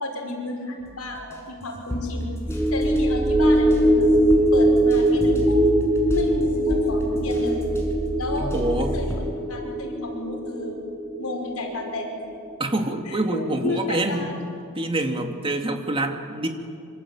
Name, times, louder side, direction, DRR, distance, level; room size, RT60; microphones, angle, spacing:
voice 1, 0.0-2.3 2.7-4.1 4.5-5.6 6.1-7.7 8.2-9.2 9.5-10.8 11.2-12.1 13.0-14.4, left 2 dB, 80° left, 2 dB, 5.5 m, -32 dB
sound 1, 0.8-9.2, equal, 10° left, 5.9 m, -31 dB
sound 2, 2.5-13.1 13.4-13.6, right 1 dB, 5° right, 2.0 m, -22 dB
voice 2, 8.4-9.0 12.6-14.3 14.7-16.5, right 1 dB, 25° right, 4 dB, 2.5 m, -26 dB
26.5 x 25.0 x 8.6 m, 2.3 s
head